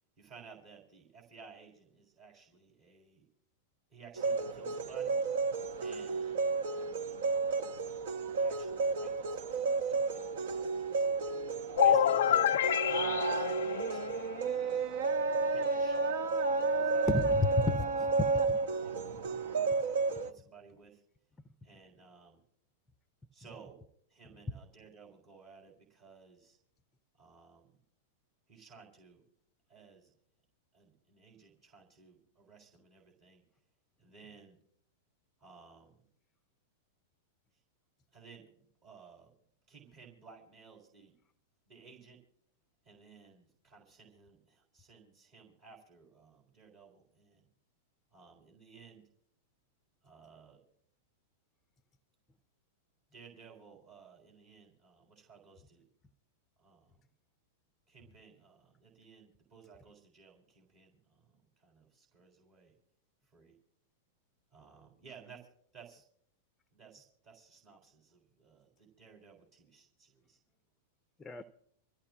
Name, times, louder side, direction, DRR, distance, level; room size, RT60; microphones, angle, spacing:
voice 1, 0.2-3.2 3.9-5.2 5.8-7.6 8.3-11.5 11.8-12.5 12.8-14.9 15.4-17.1 17.4-17.9 18.8-19.7 20.1-21.0 21.6-22.4 23.3-23.8 24.1-26.6 27.2-27.8 28.5-29.2 29.7-30.1 30.7-33.4 34.0-34.6 35.4-36.1 38.1-39.3 39.7-41.1 41.7-42.2 42.8-47.5 48.1-49.1 50.0-50.6 53.1-55.9 56.6-57.0 57.9-62.7 63.3-63.6 64.5-66.0 66.7-70.4, right 5 dB, 40° right, 3.9 m, -57 dB
sound 1, 4.2-20.3, right 4 dB, 60° right, 1.0 m, -32 dB
sound 2, 11.8-14.6, left 10 dB, 60° left, 0.5 m, -28 dB
voice 2, 17.1-18.6 71.2-71.4, left 2 dB, 15° left, 0.6 m, -32 dB
26.0 x 14.5 x 2.4 m
figure-of-eight pair, 95°, 0 cm